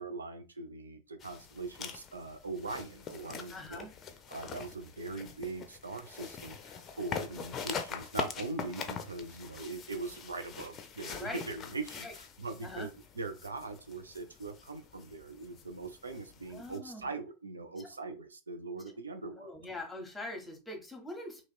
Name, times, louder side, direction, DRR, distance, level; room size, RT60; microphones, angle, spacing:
voice 1, 0.0-3.9 4.3-19.5, right 3 dB, 75° right, 7 dB, 0.5 m, -41 dB
sound 1, 1.2-16.8, left 6 dB, 25° left, 0.6 m, -44 dB
voice 2, 3.5-3.9 11.2-11.4 12.0-12.1 12.6-12.9 16.5-17.1 19.4-21.4, left 2 dB, 5° left, 3 dB, 1.3 m, -42 dB
2.9 x 2.9 x 4.3 m, 0.30 s
figure-of-eight pair, 90°, 0 cm